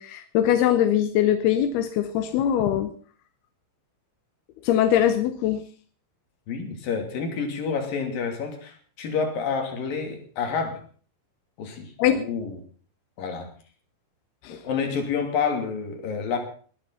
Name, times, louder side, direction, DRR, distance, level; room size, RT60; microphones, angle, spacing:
voice 1, 0.0-2.9 4.6-5.6 12.0-12.2 14.4-14.6, left 10 dB, 75° left, 9 dB, 2.4 m, -22 dB
voice 2, 6.5-10.8 11.6-12.6 13.2-13.5 14.5-16.4, left 5 dB, 50° left, 4 dB, 4.2 m, -29 dB
20.0 x 10.0 x 5.7 m, 0.43 s
omnidirectional pair, 5.6 m